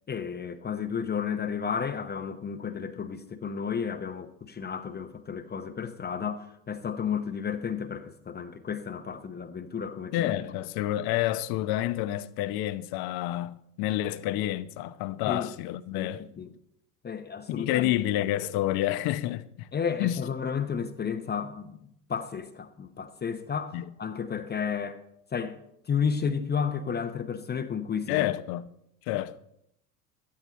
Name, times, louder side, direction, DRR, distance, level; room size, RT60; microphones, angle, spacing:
voice 1, 0.1-10.3 15.3-15.5 15.9-16.5 17.0-17.9 19.7-25.0 25.3-25.6 25.9-28.3, left 6 dB, 20° left, 0.9 m, -32 dB
voice 2, 10.1-16.3 17.5-19.7 20.0-20.2 23.7-23.8 28.1-28.7 29.1-29.4, left 14 dB, 50° left, 0.9 m, -29 dB
12.5 x 12.0 x 4.2 m
hypercardioid pair, 90°, 46 cm